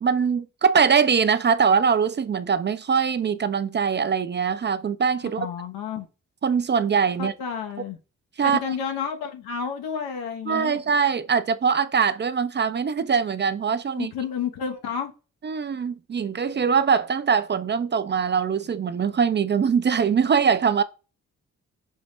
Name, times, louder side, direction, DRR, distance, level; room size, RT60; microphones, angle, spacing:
voice 1, 0.0-5.5 6.4-7.3 8.4-8.7 10.5-14.1 15.4-20.8, right 6 dB, 30° right, 0.4 m, -22 dB
voice 2, 5.4-6.1 7.2-8.0 8.4-10.8 13.9-15.1, left 7 dB, 80° left, 0.8 m, -30 dB
5.4 x 2.1 x 3.1 m
hypercardioid pair, 40°, 36 cm